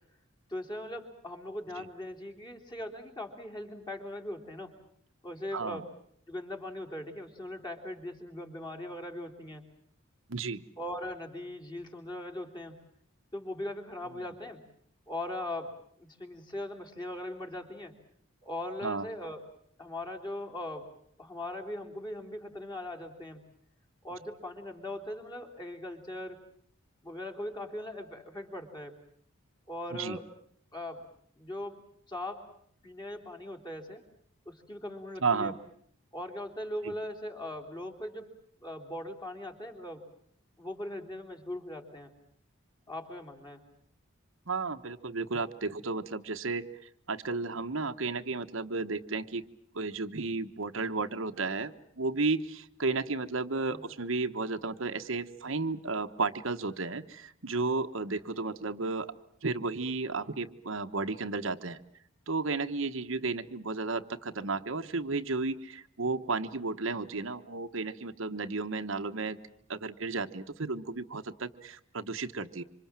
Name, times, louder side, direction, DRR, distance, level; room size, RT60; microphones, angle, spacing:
voice 1, 0.5-4.7 5.2-5.9 6.3-9.6 10.8-12.8 13.3-14.6 15.1-15.7 16.0-17.9 18.4-19.4 19.8-20.9 21.2-23.4 24.0-26.4 27.0-29.0 29.7-30.2 30.7-31.0 31.4-31.8 32.1-32.5 32.8-34.0 34.5-35.5 36.1-38.3 38.6-40.0 40.6-42.1 42.9-43.6 53.7-53.8, left 1 dB, 20° left, 3 dB, 3.4 m, -40 dB
voice 2, 5.5-5.9 10.3-10.6 18.8-19.1 29.9-30.2 35.2-35.5 36.8-36.9 44.5-49.4 49.7-59.1 59.4-61.8 62.3-69.4 69.7-72.6, right 3 dB, 65° right, 7 dB, 1.1 m, -33 dB
27.0 x 26.0 x 7.5 m, 0.65 s
head